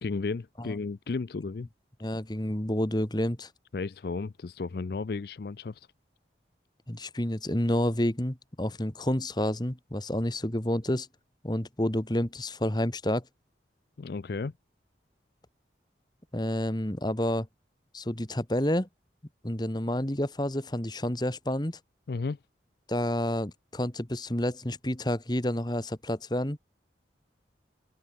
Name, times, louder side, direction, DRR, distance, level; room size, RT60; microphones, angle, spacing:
voice 1, 0.0-1.7 3.7-5.9 14.0-14.5 22.1-22.4, left 4 dB, 55° left, 0.4 m, -33 dB
voice 2, 2.0-3.5 6.9-11.1 11.4-13.2 16.3-17.5 17.9-18.9 19.4-21.8 22.9-26.6, left 1 dB, 20° left, 1.7 m, -29 dB
head